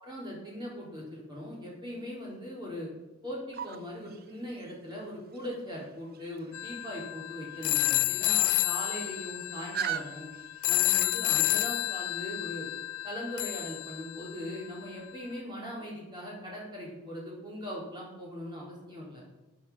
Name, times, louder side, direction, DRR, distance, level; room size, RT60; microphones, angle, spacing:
voice 1, 0.0-2.9 3.2-10.3 10.7-12.7 13.0-19.2, equal, 20° right, -4 dB, 3.9 m, -40 dB
sound 1, 3.5-11.6, right 8 dB, 45° right, 0.6 m, -42 dB
sound 2, 6.5-14.6, left 20 dB, 80° left, 0.3 m, -30 dB
13.0 x 8.4 x 5.5 m, 1.1 s
head